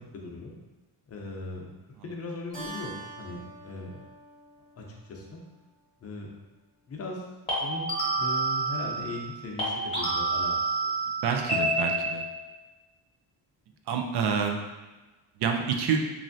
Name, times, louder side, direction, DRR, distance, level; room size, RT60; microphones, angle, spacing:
voice 1, 0.1-0.6 1.1-1.7 2.0-2.9 3.2-4.0 4.8-5.4 6.0-6.3 6.9-7.2 7.6-10.5 10.8-10.9, left 2 dB, 35° left, -1 dB, 0.6 m, -38 dB
sound 1, 2.5-2.8 7.5-9.3 9.6-12.5, right 2 dB, 15° left, 0.8 m, -29 dB
Keyboard (musical), 2.5-5.4, right 2 dB, 20° right, 0.8 m, -45 dB
voice 2, 11.2-12.2 13.9-14.6 15.4-16.0, right 6 dB, 65° right, 4 dB, 0.5 m, -27 dB
3.1 x 2.5 x 2.6 m, 1.2 s
cardioid pair, 130°, 42 cm